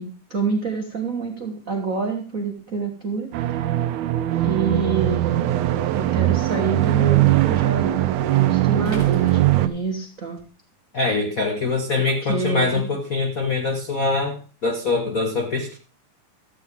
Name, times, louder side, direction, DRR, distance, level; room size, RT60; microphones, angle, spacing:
voice 1, 0.0-3.3 4.4-5.5 5.9-10.4 12.2-12.9, right 4 dB, 65° right, 2 dB, 0.8 m, -27 dB
sound 1, 3.3-9.7, right 15 dB, 80° right, 2.1 m, -20 dB
sound 2, 8.9-10.5, right 5 dB, 15° right, 3.2 m, -40 dB
voice 2, 10.9-15.8, left 3 dB, 70° left, 3 dB, 0.8 m, -23 dB
13.5 x 8.5 x 3.6 m, 0.36 s
omnidirectional pair, 3.5 m